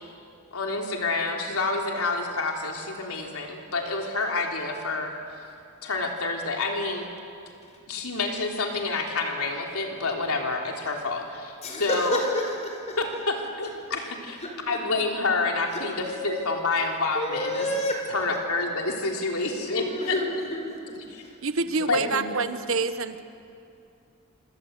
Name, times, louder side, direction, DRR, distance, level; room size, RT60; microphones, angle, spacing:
voice 1, 0.5-5.1 5.8-7.1 7.9-12.2 13.0-14.4 14.7-17.7 18.1-20.1 21.1-21.2 21.9-22.2, left 3 dB, 85° left, 1 dB, 3.6 m, -28 dB
voice 2, 11.6-13.0 14.4-14.8 15.7-16.2 17.1-18.4 19.6-21.3 22.3-22.4, left 1 dB, 30° left, 2 dB, 5.0 m, -31 dB
voice 3, 21.4-23.2, right 4 dB, 65° right, 10 dB, 1.2 m, -27 dB
27.0 x 26.0 x 8.2 m, 2.6 s
head